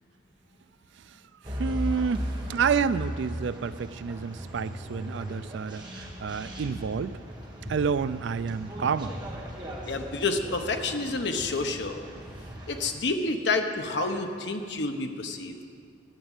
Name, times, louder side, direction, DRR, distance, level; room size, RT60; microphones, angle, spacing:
voice 1, 1.0-7.2 7.7-9.1, right 6 dB, 65° right, 15 dB, 0.3 m, -29 dB
sound 1, 1.4-12.9, equal, 20° right, 1.5 m, -37 dB
voice 2, 9.9-12.0 12.7-15.6, left 3 dB, 60° left, 5 dB, 0.9 m, -29 dB
12.0 x 7.2 x 8.9 m, 2.2 s
head